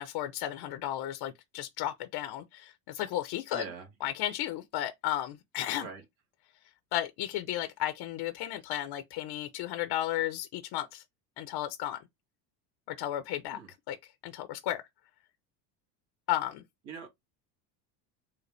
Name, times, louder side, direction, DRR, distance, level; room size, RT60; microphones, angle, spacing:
voice 1, 0.0-3.6 4.0-5.9 6.9-11.0 11.4-12.0 12.9-13.6 13.9-14.0 14.2-14.8 16.3-16.6, left 13 dB, 50° left, 0.7 m, -34 dB
voice 2, 3.5-3.9 5.7-6.0 13.5-13.7 16.9-17.1, right 5 dB, 65° right, 2.1 m, -42 dB
3.9 x 2.1 x 3.3 m
supercardioid pair, 105°, 50 cm